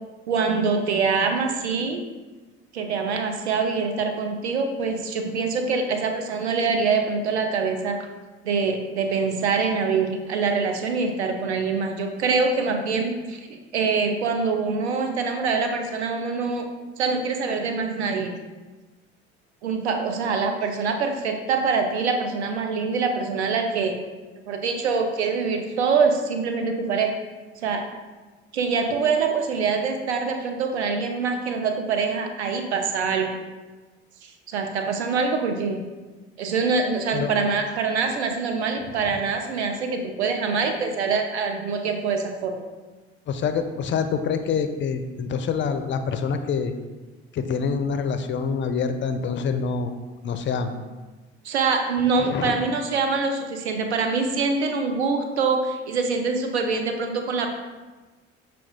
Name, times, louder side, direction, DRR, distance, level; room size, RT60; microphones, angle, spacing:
voice 1, 0.3-2.0 2.7-8.0 8.5-16.7 17.0-18.3 19.6-24.0 24.5-27.1 27.6-27.9 28.5-33.3 34.2-35.8 36.4-42.6 51.4-57.5, right 4 dB, 85° right, 4 dB, 0.5 m, -24 dB
voice 2, 43.3-46.7 47.3-49.9 50.2-50.7 52.2-52.6, left 6 dB, 35° left, 8 dB, 0.4 m, -26 dB
5.9 x 2.3 x 3.6 m, 1.3 s
hypercardioid pair, 55°, 32 cm